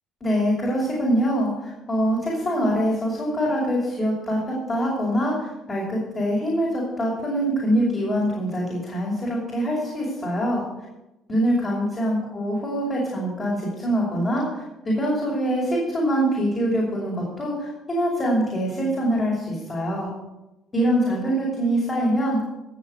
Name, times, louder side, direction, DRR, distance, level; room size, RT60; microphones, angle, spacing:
voice 1, 0.2-10.7 11.3-20.1 20.7-22.4, equal, 35° left, -5 dB, 6.0 m, -24 dB
16.0 x 7.4 x 6.7 m, 0.97 s
hypercardioid pair, 65°, 0 cm